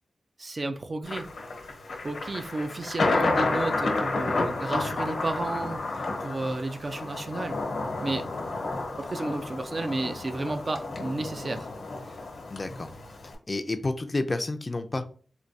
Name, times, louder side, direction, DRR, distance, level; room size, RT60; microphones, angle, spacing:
voice 1, 0.4-1.3 2.0-7.6 8.0-8.3 9.0-11.7 12.1-12.2, right 2 dB, 40° right, 0.3 m, -32 dB
Thunder, 1.1-13.3, left 3 dB, 85° left, 1.0 m, -31 dB
voice 2, 12.5-12.9 13.5-15.2, left 2 dB, 35° left, 0.4 m, -30 dB
4.4 x 2.3 x 2.6 m
wide cardioid pair, 90°, 0 cm